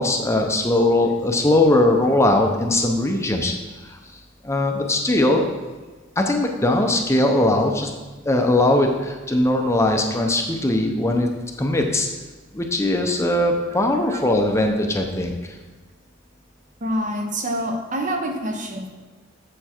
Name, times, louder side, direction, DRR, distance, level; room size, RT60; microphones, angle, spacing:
voice 1, 0.0-3.5 3.8-4.0 4.4-5.5 6.2-7.9 8.3-11.3 11.6-12.1 12.5-15.3, left 1 dB, 15° left, 3 dB, 0.7 m, -20 dB
voice 2, 16.8-18.9, equal, 40° right, 4 dB, 1.0 m, -26 dB
7.4 x 6.9 x 4.4 m, 1.3 s
head